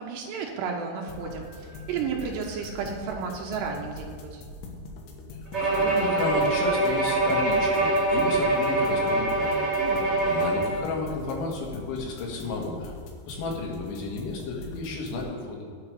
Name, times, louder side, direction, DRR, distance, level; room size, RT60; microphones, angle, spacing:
voice 1, 0.0-4.4 9.8-10.0, right 6 dB, 75° right, 1 dB, 2.9 m, -33 dB
sound 1, 1.1-15.2, left 2 dB, 70° left, 3.1 m, -42 dB
Bowed string instrument, 5.5-10.9, right 2 dB, 35° right, 1.1 m, -24 dB
voice 2, 5.6-9.6 10.2-12.9 13.3-15.7, left 3 dB, 85° left, -2 dB, 4.1 m, -32 dB
10.0 x 5.0 x 8.1 m, 2.2 s
omnidirectional pair, 5.2 m